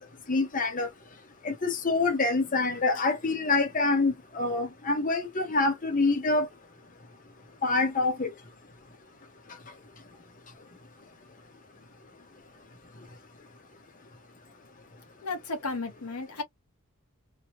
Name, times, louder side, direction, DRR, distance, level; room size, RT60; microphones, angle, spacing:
voice 1, 0.3-0.9 1.4-6.5 7.6-8.3, left 3 dB, 35° left, 0.8 m, -26 dB
voice 2, 15.2-16.4, left 3 dB, 85° left, 1.1 m, -33 dB
3.1 x 2.3 x 2.9 m
head